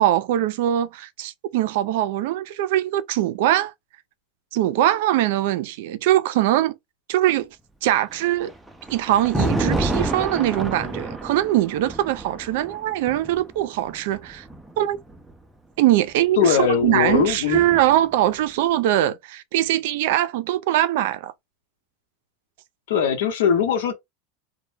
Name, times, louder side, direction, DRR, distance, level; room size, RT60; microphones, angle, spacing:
voice 1, 0.0-3.7 4.5-6.8 7.1-7.6 7.8-8.5 8.9-14.4 14.8-15.0 15.8-21.3, right 13 dB, 70° right, 0.4 m, -22 dB
Thunder, 8.1-15.3 16.4-18.1, right 2 dB, 5° right, 0.4 m, -29 dB
voice 2, 16.4-17.6 22.9-23.9, left 7 dB, 80° left, 0.9 m, -20 dB
2.1 x 2.1 x 3.2 m
supercardioid pair, 125°, 0 cm